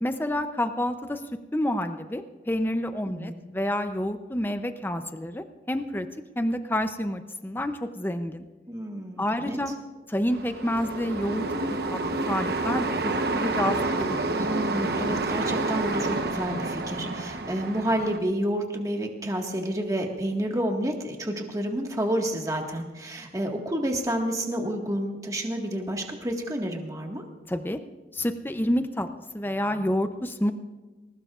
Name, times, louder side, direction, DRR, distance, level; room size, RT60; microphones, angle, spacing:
voice 1, 0.0-1.2 1.5-6.1 6.4-8.5 9.2-9.8 10.1-12.0 12.3-14.4 27.5-27.8 28.1-29.1 29.3-30.5, left 1 dB, 10° left, 8 dB, 0.6 m, -29 dB
voice 2, 3.0-3.4 8.7-9.6 14.3-27.2, right 1 dB, 20° right, 1 dB, 1.7 m, -29 dB
sound 1, 10.3-18.2, right 2 dB, 55° right, 1.0 m, -29 dB
20.5 x 19.5 x 2.5 m, 1.3 s
head